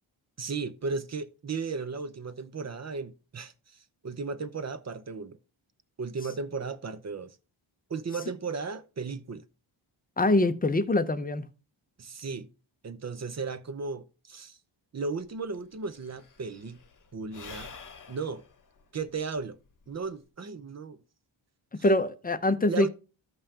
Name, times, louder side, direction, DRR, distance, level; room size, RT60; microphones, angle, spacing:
voice 1, 0.4-5.4 6.0-7.4 7.9-9.4 12.0-12.5 12.8-14.6 14.9-16.8 17.1-17.7 18.1-18.4 18.9-19.6 19.9-21.0 21.8-21.9 22.7-22.9, right 4 dB, 35° right, 0.7 m, -35 dB
voice 2, 10.2-11.5 21.8-22.9, left 2 dB, 20° left, 0.6 m, -24 dB
Sigh / Breathing, 15.3-15.4 15.5-20.3, left 5 dB, 40° left, 1.0 m, -48 dB
14.0 x 5.5 x 2.8 m
wide cardioid pair, 120°, 48 cm